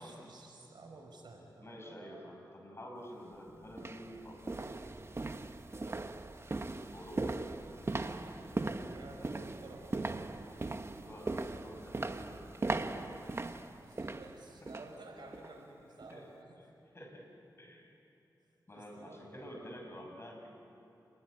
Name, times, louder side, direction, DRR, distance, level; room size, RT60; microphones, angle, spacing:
voice 1, 0.0-2.3 5.8-6.0 8.9-10.1 13.8-16.6 18.7-19.5, right 2 dB, 80° right, 1 dB, 5.7 m, -52 dB
voice 2, 1.6-4.7 6.9-7.4 11.0-12.5 14.6-14.7 16.1-16.3 16.9-17.3 17.6-17.9 18.7-20.5, equal, 35° left, 1 dB, 6.2 m, -49 dB
sound 1, 3.0-3.1 3.7-15.0 15.3-15.6 16.0-16.1, right 2 dB, 35° right, 1.1 m, -39 dB
29.0 x 21.0 x 9.8 m, 2.8 s
wide cardioid pair, 90°, 8 cm